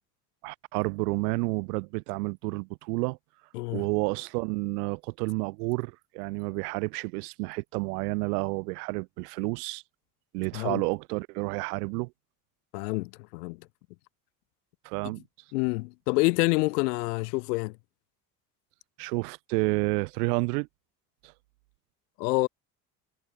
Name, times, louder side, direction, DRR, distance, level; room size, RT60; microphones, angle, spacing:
voice 1, 0.4-3.2 3.7-9.8 10.3-12.1 14.8-15.2 19.0-20.7 21.2-21.3, right 28 dB, 70° right, 3.6 m, -30 dB
voice 2, 3.5-3.9 10.5-10.8 12.7-13.7 15.5-17.8 22.2-22.5, left 25 dB, 70° left, 1.5 m, -27 dB
figure-of-eight pair, 55°, 48 cm